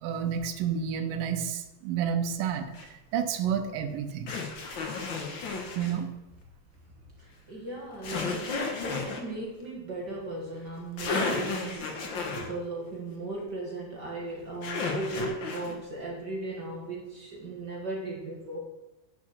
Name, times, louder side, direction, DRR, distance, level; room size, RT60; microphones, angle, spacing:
voice 1, 0.0-4.3 5.8-6.1, right 8 dB, 75° right, 6 dB, 2.5 m, -30 dB
sound 1, 2.7-2.9 4.3-6.0 8.0-9.2 10.7-10.8 11.0-12.5 14.6-15.7, left 3 dB, 60° left, 1.2 m, -32 dB
voice 2, 7.2-18.6, right 2 dB, 50° right, -2 dB, 1.3 m, -37 dB
8.6 x 7.1 x 6.4 m, 1.0 s
omnidirectional pair, 4.1 m